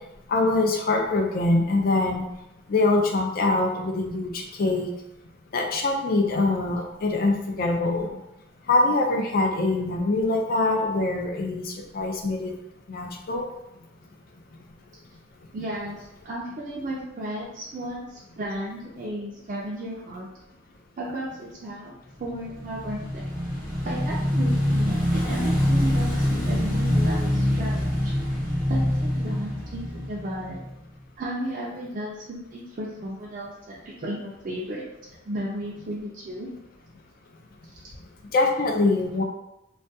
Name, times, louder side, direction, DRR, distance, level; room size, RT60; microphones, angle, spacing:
voice 1, 0.3-2.2 2.7-4.9 5.5-8.1 8.7-12.5 12.9-13.5 38.3-39.2, left 2 dB, 50° left, 2 dB, 0.4 m, -24 dB
voice 2, 15.5-20.3 21.0-23.2 23.8-28.1 28.7-30.6 31.2-34.9 35.3-36.5, right 1 dB, 45° right, -5 dB, 0.4 m, -34 dB
Motorcycle / Engine, 22.3-30.8, left 1 dB, 20° left, 1.1 m, -25 dB
2.3 x 2.2 x 2.6 m, 0.87 s
head